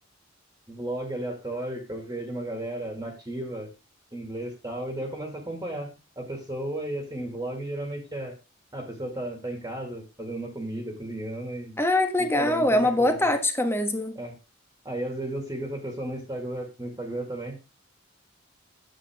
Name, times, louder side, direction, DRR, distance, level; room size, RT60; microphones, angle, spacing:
voice 1, 0.7-3.7 4.1-8.3 8.7-11.8 12.2-13.3 14.2-14.3 14.8-17.6, right 1 dB, 20° right, 2.2 m, -34 dB
voice 2, 11.8-14.2, left 1 dB, 10° left, 1.3 m, -23 dB
9.1 x 9.1 x 3.6 m
head